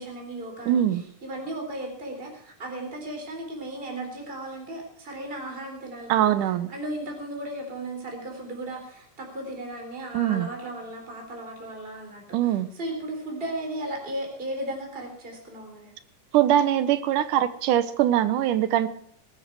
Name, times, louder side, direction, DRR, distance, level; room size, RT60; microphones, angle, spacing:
voice 1, 0.0-15.9, right 1 dB, 15° right, 1 dB, 3.9 m, -36 dB
voice 2, 0.7-1.0 6.1-6.7 10.1-10.5 12.3-12.7 16.3-18.9, right 11 dB, 80° right, 13 dB, 2.4 m, -22 dB
20.0 x 13.0 x 4.7 m, 0.64 s
omnidirectional pair, 3.8 m